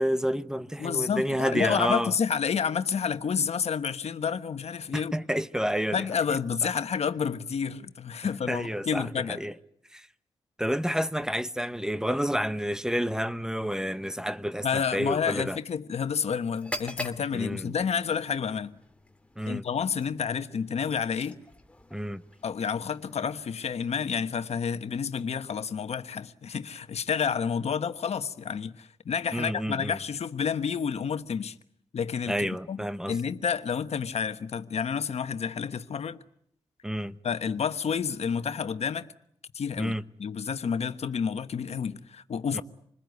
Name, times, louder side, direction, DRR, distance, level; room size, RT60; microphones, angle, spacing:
voice 1, 0.0-2.1 4.9-6.1 8.5-9.5 9.9-10.1 10.6-15.6 17.3-17.7 19.4-19.6 21.9-22.2 29.3-30.0 32.3-33.2 36.8-37.2 39.8-40.0 42.5-42.6, equal, 5° right, 1.0 m, -29 dB
voice 2, 0.8-5.2 5.9-9.4 14.6-18.8 19.5-21.3 22.4-31.5 31.9-36.2 37.2-39.1 39.5-42.6, left 6 dB, 75° left, 1.2 m, -30 dB
sound 1, 16.5-24.3, left 1 dB, 10° left, 2.6 m, -44 dB
27.5 x 20.5 x 9.5 m
cardioid pair, 60°, 11 cm